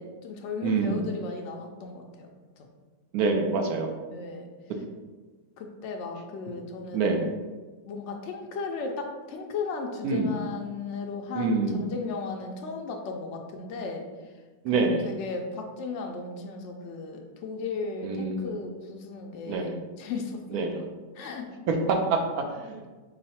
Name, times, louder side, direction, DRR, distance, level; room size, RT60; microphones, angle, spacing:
voice 1, 0.0-2.3 4.1-4.5 5.6-7.1 7.8-14.3 14.7-19.7 20.0-20.8 21.1-21.5, left 4 dB, 85° left, 2 dB, 0.6 m, -36 dB
voice 2, 0.6-1.1 3.1-3.9 6.9-7.2 10.0-10.3 11.3-11.9 14.6-15.1 18.0-18.5 19.5-19.8 20.5-20.8 21.7-22.8, right 3 dB, 70° right, 3 dB, 0.9 m, -26 dB
5.4 x 2.1 x 4.2 m, 1.3 s
omnidirectional pair, 1.8 m